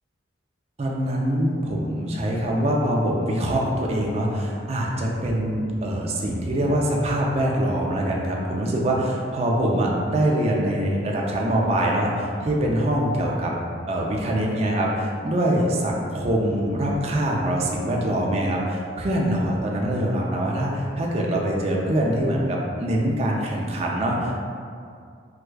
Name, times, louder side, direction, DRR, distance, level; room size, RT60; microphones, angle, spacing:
voice 1, 0.8-13.5 13.9-24.4, right 1 dB, 35° right, -2 dB, 0.4 m, -24 dB
4.6 x 2.3 x 2.2 m, 2.3 s
head